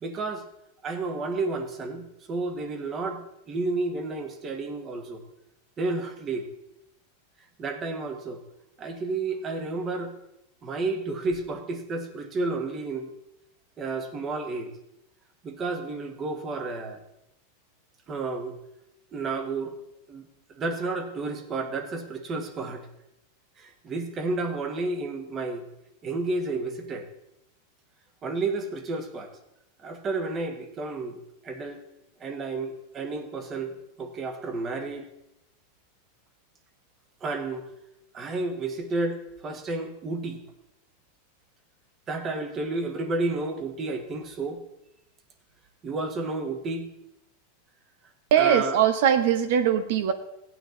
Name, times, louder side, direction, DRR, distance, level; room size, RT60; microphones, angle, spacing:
voice 1, 0.0-0.4 0.8-3.2 3.5-5.2 5.8-6.5 7.6-8.4 8.8-10.1 10.6-13.1 13.8-14.7 15.4-17.0 18.1-18.6 19.1-19.7 20.1-22.9 23.6-25.6 26.0-27.1 28.2-29.3 29.8-31.2 31.4-31.8 32.2-35.1 37.2-37.7 38.1-40.4 42.1-44.6 45.8-46.9 48.4-48.8, right 3 dB, 25° right, 7 dB, 1.5 m, -31 dB
voice 2, 48.3-50.1, right 9 dB, 65° right, 10 dB, 1.2 m, -21 dB
16.5 x 9.3 x 4.0 m, 0.83 s
supercardioid pair, 145°, 0 cm